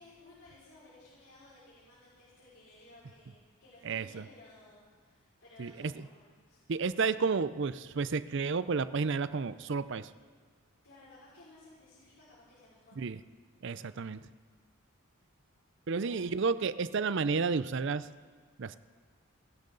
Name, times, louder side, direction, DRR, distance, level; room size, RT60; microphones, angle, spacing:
voice 1, 0.0-6.6 10.8-13.0 15.9-16.3, left 2 dB, 80° left, -9 dB, 5.5 m, -57 dB
voice 2, 3.8-4.3 5.6-6.1 6.7-10.1 13.0-13.2 13.6-14.3 15.9-18.1 18.6-18.8, right 4 dB, 55° right, 15 dB, 0.5 m, -31 dB
29.5 x 12.0 x 4.0 m, 1.5 s
head